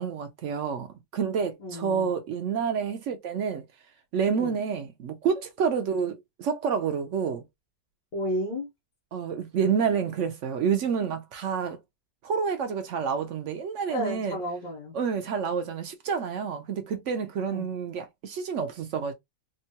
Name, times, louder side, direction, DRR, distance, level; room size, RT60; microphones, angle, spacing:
voice 1, 0.0-3.6 4.1-6.1 6.4-7.4 9.1-11.8 12.2-14.4 14.9-19.1, right 6 dB, 70° right, 0.7 m, -28 dB
voice 2, 1.6-2.2 4.3-4.6 8.1-8.7 13.9-15.0 17.5-17.7, equal, 90° left, 1.7 m, -32 dB
3.6 x 2.2 x 2.7 m
omnidirectional pair, 1.8 m